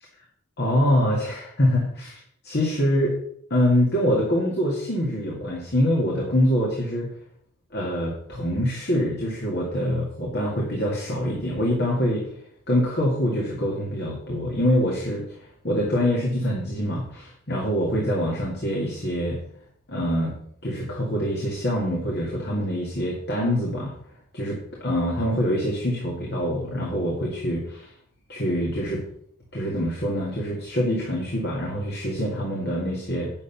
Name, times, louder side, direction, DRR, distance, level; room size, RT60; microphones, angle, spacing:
voice 1, 0.6-3.2 3.5-7.1 7.7-12.3 12.7-19.4 19.9-20.3 20.6-23.9 24.3-27.9 28.3-29.1 29.5-33.3, equal, 50° left, -3 dB, 2.1 m, -25 dB
8.9 x 7.0 x 5.6 m, 0.66 s
head